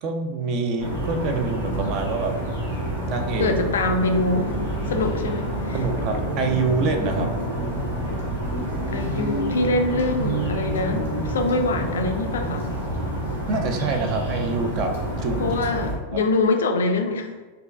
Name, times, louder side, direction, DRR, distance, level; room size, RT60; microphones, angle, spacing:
voice 1, 0.0-2.3 3.1-3.5 5.7-7.3 13.5-14.9 15.2-15.5 16.1-16.2, right 4 dB, 40° right, 5 dB, 0.5 m, -26 dB
sound 1, 0.8-15.9, right 1 dB, 65° right, 0.9 m, -28 dB
voice 2, 3.4-4.5 4.9-5.8 8.9-12.7 15.4-17.3, left 2 dB, 65° left, 6 dB, 0.3 m, -24 dB
4.4 x 2.5 x 2.3 m, 1.3 s
figure-of-eight pair, 90°, 0 cm